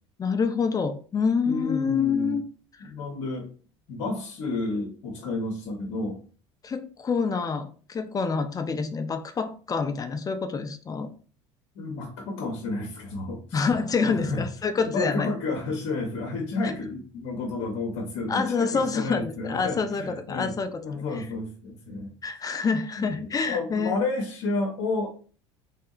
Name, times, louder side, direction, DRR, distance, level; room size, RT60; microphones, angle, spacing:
voice 1, 0.2-2.4 6.6-11.1 13.5-15.3 16.6-16.7 18.3-21.3 22.2-24.0, left 5 dB, 25° left, 8 dB, 0.4 m, -27 dB
voice 2, 1.4-2.4 2.8-3.5 3.9-6.2 11.7-13.7 14.0-14.5 14.8-20.5 20.8-22.1 22.5-22.6 23.0-25.1, left 3 dB, 65° left, 0 dB, 0.8 m, -31 dB
3.3 x 2.7 x 2.4 m, 0.40 s
hypercardioid pair, 70°, 15 cm